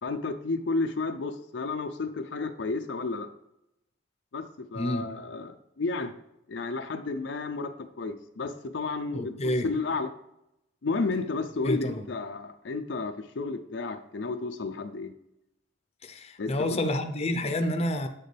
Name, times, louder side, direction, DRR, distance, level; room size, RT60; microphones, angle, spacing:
voice 1, 0.0-3.3 4.3-4.4 4.7-6.1 6.5-7.7 8.0-10.1 10.8-15.1 16.4-16.5, left 3 dB, 70° left, 0.5 m, -32 dB
voice 2, 4.7-5.1 9.1-9.7 11.6-12.0 16.0-18.1, left 1 dB, 35° left, 0.7 m, -29 dB
7.6 x 6.6 x 3.3 m
head